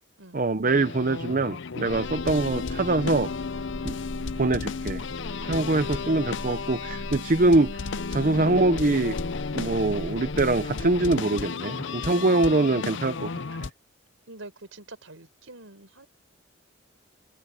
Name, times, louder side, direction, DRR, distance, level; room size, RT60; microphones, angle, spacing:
voice 1, 0.3-3.3 3.8-4.0 4.3-5.0 5.4-7.8 8.1-9.2 9.5-13.6, right 2 dB, 40° right, 0.7 m, -24 dB
sound 1, 0.6-13.7, left 4 dB, 60° left, 0.6 m, -33 dB
sound 2, 1.9-11.0, equal, 20° left, 3.8 m, -40 dB
voice 2, 14.3-16.1, right 2 dB, 75° right, 4.8 m, -46 dB
open air
head